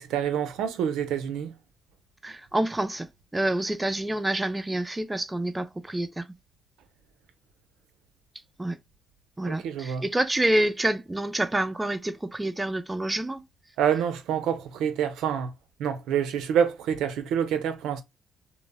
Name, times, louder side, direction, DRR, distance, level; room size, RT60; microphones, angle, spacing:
voice 1, 0.0-1.5 9.4-10.0 13.8-15.5 15.8-18.0, right 8 dB, 85° right, 0.4 m, -27 dB
voice 2, 2.2-6.3 8.6-8.8 9.4-13.4, right 1 dB, 15° right, 0.3 m, -27 dB
2.0 x 2.0 x 3.2 m
cardioid pair, 90°, 0 cm